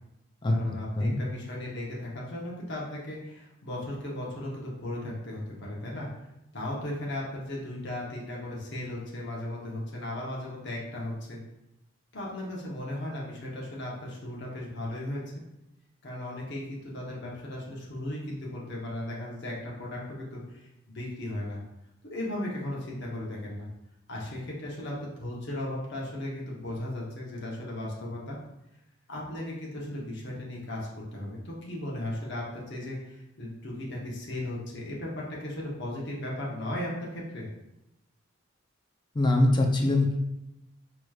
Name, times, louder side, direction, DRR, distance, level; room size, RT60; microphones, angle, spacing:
voice 1, 0.5-6.1 6.5-11.4 12.1-15.2 16.0-21.6 22.0-23.7 24.1-28.4 29.1-37.5, left 1 dB, 55° left, -4 dB, 0.9 m, -36 dB
voice 2, 39.1-40.2, left 1 dB, 20° left, 1 dB, 0.4 m, -23 dB
4.6 x 3.0 x 2.3 m, 0.88 s
head